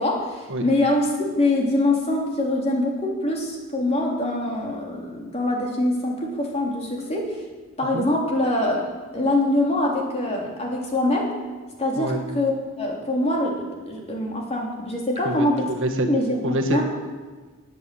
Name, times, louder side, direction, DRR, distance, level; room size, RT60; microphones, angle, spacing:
voice 1, 0.0-7.4 7.8-8.8 9.1-11.3 11.8-15.7 16.0-16.8, left 1 dB, 30° left, -1 dB, 3.2 m, -24 dB
voice 2, 15.2-16.1 16.4-16.8, right 1 dB, 60° right, 3 dB, 1.6 m, -26 dB
20.0 x 8.4 x 7.6 m, 1.4 s
head